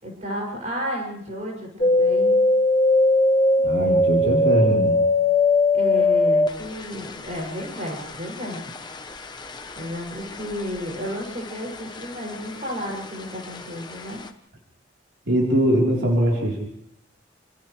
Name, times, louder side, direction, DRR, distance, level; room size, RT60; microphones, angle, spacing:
voice 1, 0.0-2.4 5.7-8.7 9.7-14.2, equal, 35° right, -1 dB, 6.8 m, -32 dB
sound 1, 1.8-11.2 11.5-12.3 12.7-13.6 14.0-14.1, left 2 dB, 20° left, 1.0 m, -21 dB
voice 2, 3.6-5.0 15.3-16.6, equal, 70° right, -2 dB, 4.0 m, -21 dB
29.0 x 27.0 x 3.4 m, 0.72 s
head